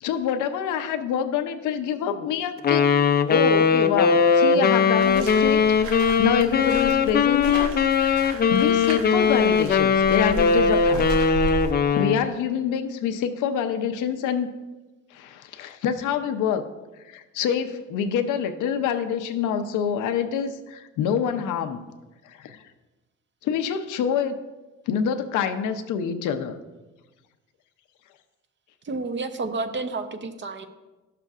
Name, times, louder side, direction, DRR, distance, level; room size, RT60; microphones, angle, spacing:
voice 1, 0.0-2.9 3.3-11.1 11.9-14.5 15.1-16.7 17.0-21.8 22.3-22.6 23.4-24.4 24.9-26.6, left 7 dB, 90° left, 8 dB, 0.7 m, -26 dB
Wind instrument woodwind instrument, 2.6-12.2, left 5 dB, 35° left, 0.4 m, -20 dB
sound 1, 5.0-11.7, right 1 dB, 85° right, 1.2 m, -35 dB
voice 2, 28.8-30.7, right 3 dB, 40° right, 9 dB, 0.7 m, -30 dB
11.5 x 6.6 x 2.4 m, 1.1 s
cardioid pair, 90°, 30 cm